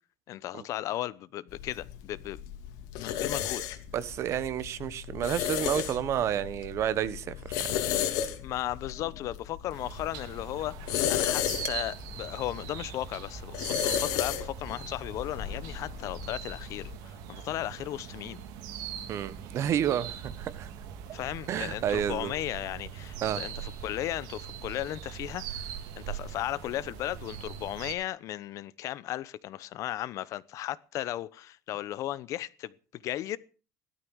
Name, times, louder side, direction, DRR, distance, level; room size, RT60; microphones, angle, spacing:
voice 1, 0.3-2.4 3.0-3.6 8.4-18.4 21.1-33.4, left 13 dB, 55° left, 0.9 m, -36 dB
sound 1, 1.5-17.0, left 10 dB, 80° left, 2.7 m, -34 dB
voice 2, 3.9-7.7 19.1-20.7 21.5-22.3 23.2-23.4, right 10 dB, 50° right, 1.3 m, -30 dB
sound 2, 9.7-27.9, right 9 dB, 80° right, 2.8 m, -41 dB
17.0 x 12.5 x 6.4 m
cardioid pair, 140°, 6 cm